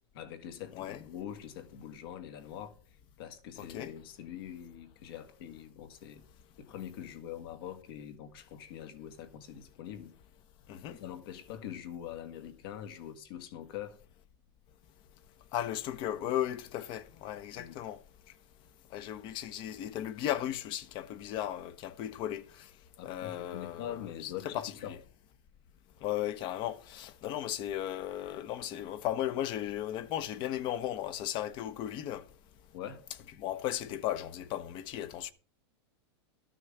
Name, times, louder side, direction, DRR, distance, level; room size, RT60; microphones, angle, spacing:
voice 1, 0.1-2.8 3.2-6.3 6.6-10.1 10.8-14.0 17.6-17.8 23.0-25.0 32.7-33.0, left 10 dB, 60° left, 1.9 m, -44 dB
voice 2, 3.6-3.9 10.7-11.0 15.5-18.0 18.9-22.7 23.0-25.0 26.0-32.2 33.4-35.3, left 12 dB, 35° left, 1.0 m, -36 dB
13.0 x 6.4 x 6.7 m
supercardioid pair, 150°, 14 cm